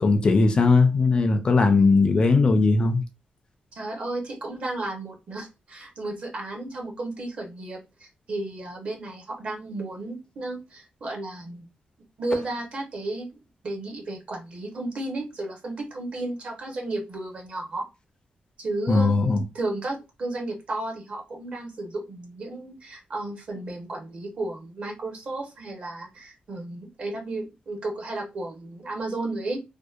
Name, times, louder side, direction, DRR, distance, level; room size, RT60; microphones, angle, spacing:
voice 1, 0.0-3.0 18.9-19.4, left 3 dB, 35° left, 0.4 m, -19 dB
voice 2, 3.7-11.6 12.2-13.3 13.6-17.9 18.6-29.6, right 2 dB, 50° right, 0.7 m, -33 dB
2.7 x 2.0 x 2.3 m
wide cardioid pair, 145°, 3 cm